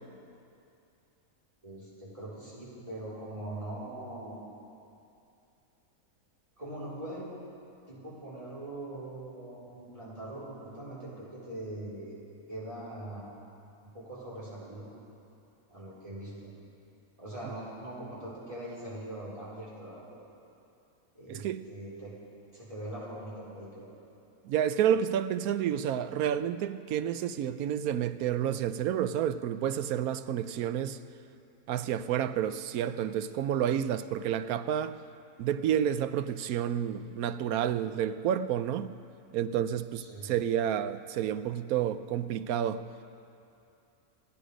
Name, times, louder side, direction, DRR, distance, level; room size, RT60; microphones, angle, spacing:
voice 1, 1.6-4.4 6.6-7.3 7.9-12.2 12.5-13.2 13.8-14.9 15.7-16.5 17.2-20.2 21.1-22.1 22.5-23.9 40.0-40.4, right 1 dB, 25° right, 4.7 m, -42 dB
voice 2, 21.3-21.7 24.5-31.0 31.7-35.0 35.4-38.9 39.3-42.8, right 9 dB, 85° right, 1.1 m, -30 dB
29.0 x 9.8 x 5.1 m
omnidirectional pair, 1.5 m